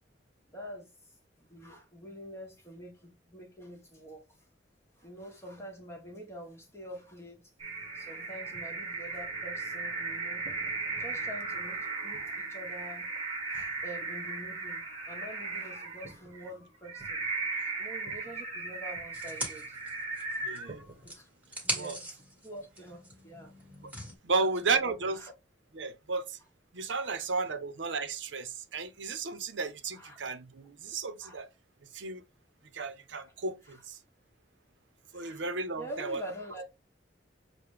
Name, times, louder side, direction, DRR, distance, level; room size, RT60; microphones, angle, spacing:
voice 1, 0.5-0.9 1.4-4.2 5.0-7.5 7.9-10.5 11.0-13.1 13.5-17.2 17.8-19.8 20.2-20.5 21.0-21.3 21.6-23.6 24.3-25.3 27.0-27.2 29.9-30.2 31.2-31.4 35.1-35.4 35.8-36.6, equal, 15° left, 1.2 m, -46 dB
sound 1, 7.6-21.1, right 3 dB, 35° right, 1.0 m, -37 dB
sound 2, 19.1-20.7 21.0-24.2, right 1 dB, 10° right, 1.6 m, -40 dB
voice 2, 20.4-20.9 21.7-22.0 24.2-25.2 25.7-26.4 26.7-31.5 31.8-32.2 32.7-34.0 35.1-36.2, right 4 dB, 75° right, 0.7 m, -33 dB
6.6 x 2.2 x 3.2 m
head